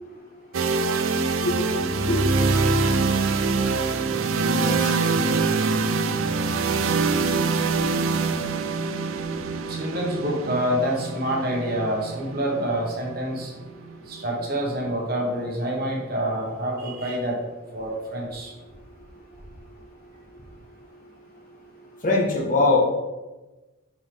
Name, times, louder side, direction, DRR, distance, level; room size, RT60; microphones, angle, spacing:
sound 1, 0.5-14.4, right 4 dB, 80° right, 0.5 m, -24 dB
voice 1, 9.7-13.5 14.1-17.4 17.7-18.5, equal, 45° right, -2 dB, 1.4 m, -27 dB
voice 2, 22.0-22.8, left 3 dB, 40° left, -2 dB, 1.2 m, -21 dB
7.0 x 4.3 x 3.4 m, 1.1 s
head